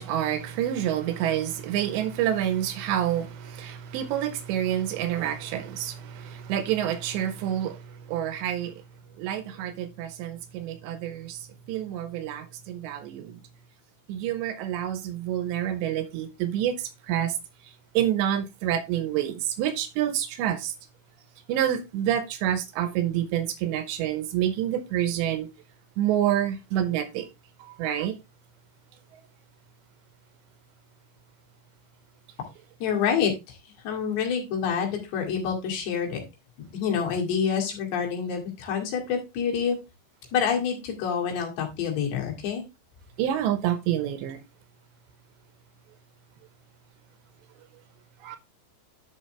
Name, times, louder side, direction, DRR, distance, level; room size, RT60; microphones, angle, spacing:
voice 1, 0.0-8.8 9.2-13.4 14.1-17.4 17.9-20.7 21.5-25.5 26.0-27.3 27.6-28.1 29.1-29.2 43.2-44.4 48.2-48.4, right 11 dB, 90° right, 3.3 m, -28 dB
voice 2, 32.8-33.6 33.8-36.2 36.6-39.8 40.3-42.6, left 7 dB, 75° left, 4.3 m, -27 dB
11.0 x 5.7 x 3.3 m
omnidirectional pair, 5.0 m